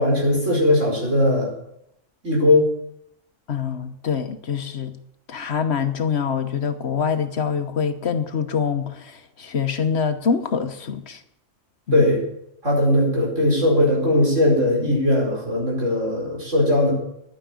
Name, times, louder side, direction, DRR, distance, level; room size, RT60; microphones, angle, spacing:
voice 1, 0.0-1.5 2.2-2.7 11.9-12.3 12.6-16.9, left 1 dB, 70° right, -2 dB, 5.3 m, -19 dB
voice 2, 3.5-5.0 5.3-11.2 11.9-12.1, left 6 dB, 60° left, 9 dB, 1.2 m, -25 dB
11.0 x 9.7 x 8.2 m, 0.78 s
omnidirectional pair, 1.3 m